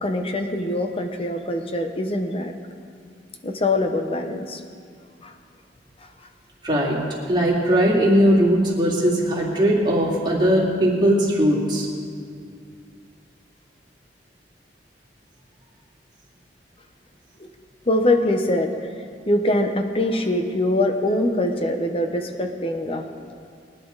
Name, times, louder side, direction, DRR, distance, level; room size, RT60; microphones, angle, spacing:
voice 1, 0.0-2.5 3.4-4.6 5.2-5.3 17.4-17.5 17.9-18.7 19.3-23.3, left 1 dB, 35° left, 5 dB, 1.1 m, -23 dB
voice 2, 6.6-7.0 7.3-11.9, equal, 25° right, -5 dB, 3.2 m, -19 dB
23.0 x 10.5 x 4.1 m, 2.2 s
head